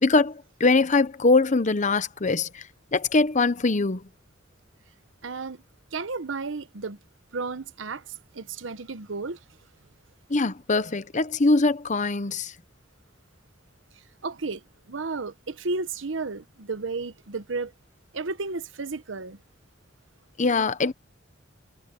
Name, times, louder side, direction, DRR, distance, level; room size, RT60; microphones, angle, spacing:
voice 1, 0.0-2.6 2.9-4.0 10.3-12.5 20.4-20.9, left 3 dB, 40° left, 0.8 m, -22 dB
voice 2, 5.2-5.6 5.9-7.0 7.3-9.4 14.2-14.6 14.9-17.7 18.1-19.4, right 3 dB, 85° right, 1.0 m, -33 dB
head